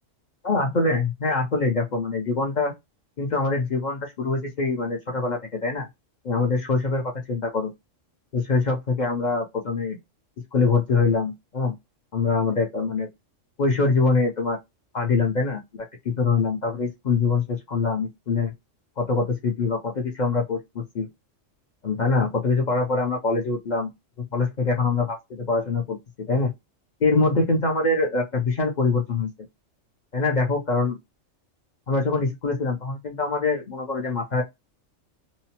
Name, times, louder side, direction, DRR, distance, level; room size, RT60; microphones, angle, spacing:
voice 1, 0.4-2.7 3.2-5.9 6.2-7.7 8.3-10.0 10.5-11.8 12.1-13.1 13.6-14.6 14.9-18.5 19.0-21.1 21.8-23.9 24.3-26.5 27.0-29.3 30.1-31.0 31.9-34.4, left 3 dB, 50° left, 0.6 m, -24 dB
2.8 x 2.0 x 2.8 m
omnidirectional pair, 1.3 m